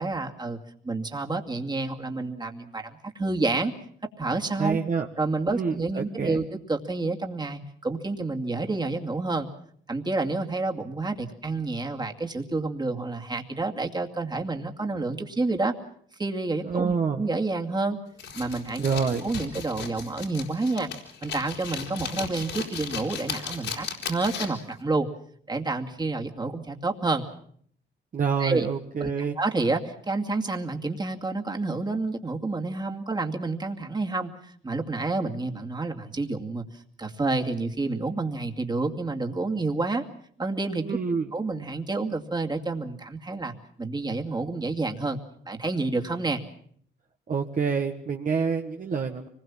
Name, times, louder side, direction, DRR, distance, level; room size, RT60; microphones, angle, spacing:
voice 1, 0.0-3.7 4.2-4.8 5.2-9.5 9.9-15.7 16.2-18.0 18.3-20.9 21.2-25.1 25.5-27.2 28.4-28.7 29.0-29.1 29.4-40.0 40.4-41.0 41.3-45.2 45.5-46.4, right 3 dB, 20° right, 3 dB, 2.4 m, -29 dB
voice 2, 4.6-5.1 5.5-6.4 16.6-17.3 18.8-19.2 28.1-29.4 40.8-41.3 47.3-49.3, right 6 dB, 40° right, 2 dB, 1.5 m, -27 dB
sound 1, 18.2-24.7, left 6 dB, 70° left, 4.7 m, -36 dB
25.0 x 20.5 x 7.4 m, 0.62 s
cardioid pair, 90°, 20 cm